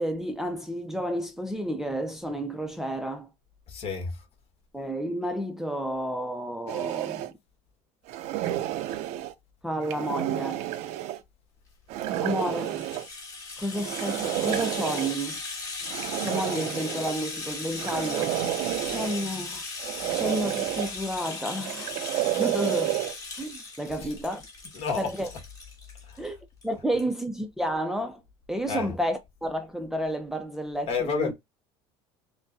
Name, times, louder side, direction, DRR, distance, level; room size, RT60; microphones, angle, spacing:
voice 1, 0.0-3.3 4.7-7.3 9.6-10.7 12.2-12.8 13.6-15.4 16.2-18.4 18.8-19.6 20.1-21.9 22.4-23.0 23.4-24.4 25.0-25.3 26.2-26.4 26.6-28.2 28.5-31.3, equal, 5° right, 0.6 m, -31 dB
voice 2, 3.7-4.2 23.9-24.1 24.7-25.4 26.0-26.4 26.9-27.0 28.7-28.9 30.9-31.3, left 5 dB, 50° left, 1.6 m, -31 dB
sound 1, 6.7-7.3 8.1-9.3 9.8-11.2 11.9-13.1 13.8-15.1 15.9-17.2 17.8-19.3 19.8-20.9 21.6-23.1, right 14 dB, 65° right, 0.6 m, -30 dB
Rattle (instrument), 12.1-26.3 26.6-26.7 27.0-27.1, left 3 dB, 30° left, 1.8 m, -38 dB
5.8 x 2.2 x 2.7 m
supercardioid pair, 110°, 13 cm